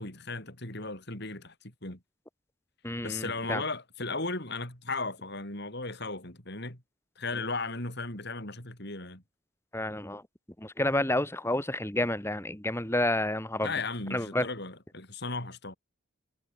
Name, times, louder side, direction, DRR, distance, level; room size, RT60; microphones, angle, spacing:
voice 1, 0.0-2.0 3.0-6.8 7.2-9.2 13.6-15.8, left 3 dB, 55° left, 6.5 m, -36 dB
voice 2, 2.8-3.6 9.7-10.2 10.6-13.7 14.1-14.5, left 1 dB, 10° left, 2.4 m, -30 dB
head